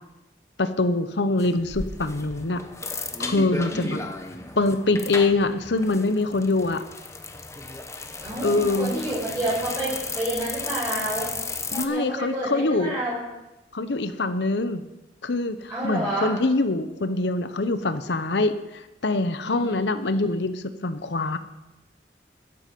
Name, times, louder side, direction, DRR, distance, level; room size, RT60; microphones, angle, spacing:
voice 1, 0.6-2.6 3.2-4.0 4.6-6.8 8.4-8.9 11.7-12.9 13.7-14.8 15.2-15.6 15.8-18.6 19.0-21.4, left 2 dB, 70° left, 10 dB, 0.9 m, -24 dB
sound 1, 1.4-11.9, left 3 dB, 15° left, 0.9 m, -34 dB
voice 2, 3.7-4.0 8.2-11.3 11.7-13.2 15.7-16.3 19.4-19.8 20.1-20.2, right 1 dB, 15° right, -10 dB, 5.6 m, -29 dB
12.5 x 11.5 x 5.3 m, 0.99 s
head